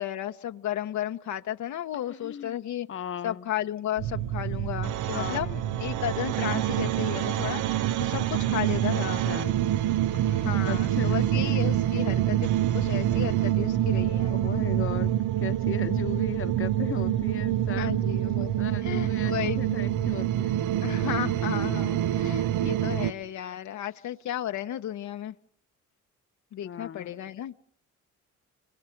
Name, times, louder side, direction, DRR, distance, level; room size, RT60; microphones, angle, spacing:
voice 1, 0.0-2.9 3.2-9.2 10.1-14.3 17.8-18.5 18.8-19.8 20.8-25.3 26.5-27.5, left 11 dB, 70° left, 0.9 m, -34 dB
voice 2, 2.1-2.6 2.9-3.5 5.1-5.7 9.2-9.6 10.7-11.2 14.3-18.0 18.6-20.6 21.0-21.1 26.6-27.2, left 8 dB, 45° left, 1.0 m, -37 dB
sound 1, 4.0-23.1, right 12 dB, 90° right, 0.9 m, -26 dB
28.0 x 25.0 x 5.9 m
cardioid pair, 90°, 30 cm